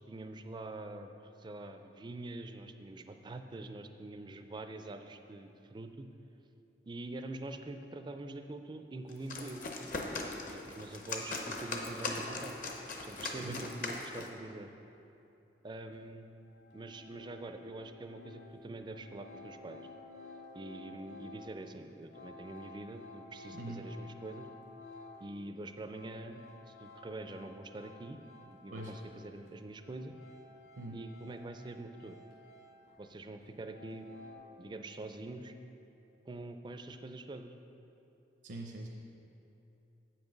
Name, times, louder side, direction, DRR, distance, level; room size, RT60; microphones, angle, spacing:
voice 1, 0.1-6.1 6.8-9.7 10.0-12.5 13.0-14.7 15.6-16.3 16.7-19.9 20.5-24.5 25.2-28.2 28.4-30.1 30.9-32.2 33.0-34.1 34.6-35.5 36.2-37.5, right 2 dB, 25° right, 7 dB, 0.4 m, -45 dB
sound 1, 9.1-14.4, left 3 dB, 50° left, 0.8 m, -40 dB
sound 2, 15.9-16.0 16.4-25.3 25.6-29.2 29.5-33.1 33.4-34.3, left 3 dB, 65° left, 1.8 m, -53 dB
voice 2, 23.5-23.9 28.7-28.9 30.8-31.0 38.4-38.9, right 2 dB, 70° right, 0 dB, 0.6 m, -43 dB
7.8 x 6.0 x 5.2 m, 2.9 s
head